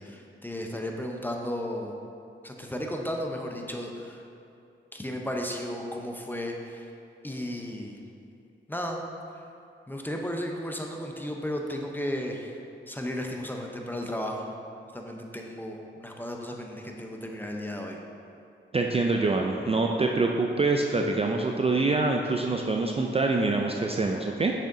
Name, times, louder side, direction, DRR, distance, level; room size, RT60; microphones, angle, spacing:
voice 1, 0.0-2.0 2.4-4.2 4.9-6.9 7.2-8.0 8.7-9.0 9.9-12.6 12.9-14.5 14.9-18.0, equal, 10° left, 1 dB, 0.7 m, -34 dB
voice 2, 18.7-24.5, right 3 dB, 30° right, 1 dB, 0.4 m, -25 dB
6.4 x 6.3 x 2.7 m, 2.6 s
cardioid pair, 65°, 21 cm